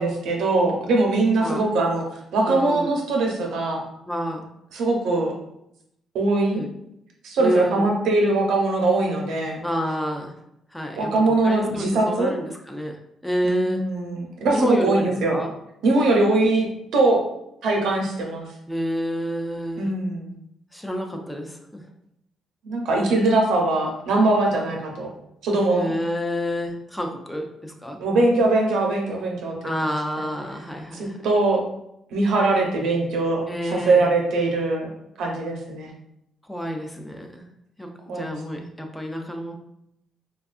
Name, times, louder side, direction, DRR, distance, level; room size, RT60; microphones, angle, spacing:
voice 1, 0.0-2.0 2.3-3.8 4.7-5.3 6.1-6.6 7.2-9.6 11.0-12.3 13.4-15.4 15.8-16.7 16.9-17.2 17.6-18.5 19.8-20.3 22.6-25.1 25.4-25.9 28.0-30.3 30.9-31.6 32.1-34.9 35.2-35.9 38.1-38.7, right 2 dB, 80° right, 0 dB, 0.7 m, -22 dB
voice 2, 2.5-2.9 4.1-4.5 6.5-6.7 7.4-7.9 9.6-10.3 10.7-11.1 11.4-13.9 14.5-15.5 18.7-19.9 20.7-21.8 25.8-28.0 29.6-31.2 33.5-34.1 36.4-37.5 37.8-39.5, equal, 5° left, 2 dB, 0.5 m, -29 dB
3.4 x 2.3 x 2.4 m, 0.79 s
cardioid pair, 90°, 0 cm